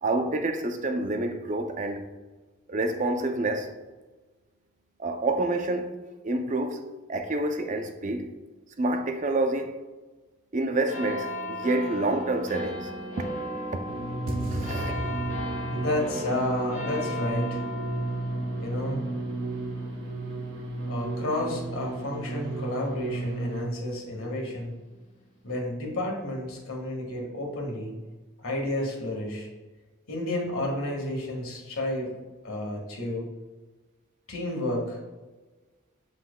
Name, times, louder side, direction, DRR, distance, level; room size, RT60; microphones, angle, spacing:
voice 1, 0.0-2.1 2.7-3.7 5.0-6.0 6.2-6.8 7.1-8.3 8.8-9.8 10.5-12.9 13.2-13.3 13.7-14.0 14.5-15.0, right 2 dB, 35° right, 0.5 m, -28 dB
sound 1, 10.9-23.8 24.4-24.5, equal, 35° left, 1.2 m, -37 dB
sound 2, 13.8-23.6, right 2 dB, 65° right, 0.8 m, -33 dB
voice 2, 15.7-17.6 18.6-19.0 20.9-24.7 25.4-27.9 28.4-29.5 30.1-32.1 32.4-33.3 34.3-35.0, left 1 dB, 90° left, 1.7 m, -31 dB
7.4 x 5.9 x 2.2 m
head